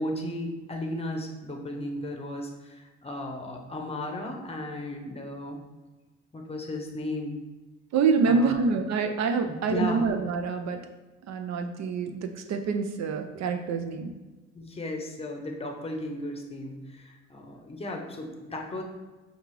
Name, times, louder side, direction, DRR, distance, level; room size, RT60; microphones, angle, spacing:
voice 1, 0.0-5.6 6.3-7.4 8.3-8.6 9.5-10.0 14.5-18.8, left 1 dB, 20° left, 2 dB, 0.7 m, -35 dB
voice 2, 7.9-10.8 11.3-14.1, right 4 dB, 60° right, 6 dB, 0.5 m, -26 dB
5.3 x 2.4 x 3.2 m, 1.2 s
cardioid pair, 90°, 30 cm